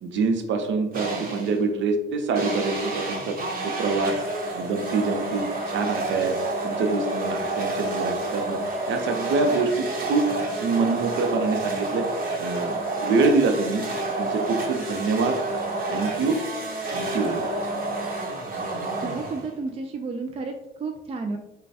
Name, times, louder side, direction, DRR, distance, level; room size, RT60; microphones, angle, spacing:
voice 1, 0.0-3.4 3.6-4.2 4.5-6.4 6.6-8.6 8.9-10.2 10.6-12.1 12.4-13.8 14.2-15.4 15.9-16.4 16.9-17.5, right 3 dB, 70° right, 5 dB, 0.6 m, -25 dB
sound 1, 0.9-1.6 2.3-19.7, right 2 dB, 45° right, 1.0 m, -29 dB
voice 2, 19.0-21.4, right 4 dB, 30° right, 4 dB, 0.4 m, -32 dB
5.2 x 2.2 x 2.7 m, 0.97 s
cardioid pair, 90°, 20 cm